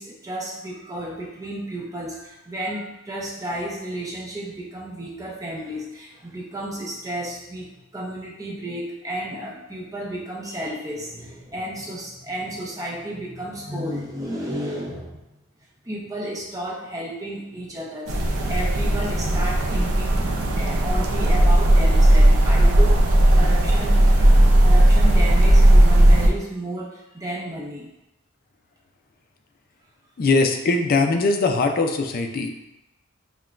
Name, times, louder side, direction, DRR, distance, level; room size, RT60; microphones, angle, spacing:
voice 1, 0.0-15.2 15.8-27.9, right 1 dB, 15° right, -3 dB, 0.6 m, -32 dB
sound 1, 18.1-26.3, right 1 dB, 85° right, 0.5 m, -16 dB
voice 2, 30.2-32.6, left 3 dB, 45° left, 5 dB, 0.4 m, -21 dB
5.7 x 2.2 x 2.4 m, 0.91 s
head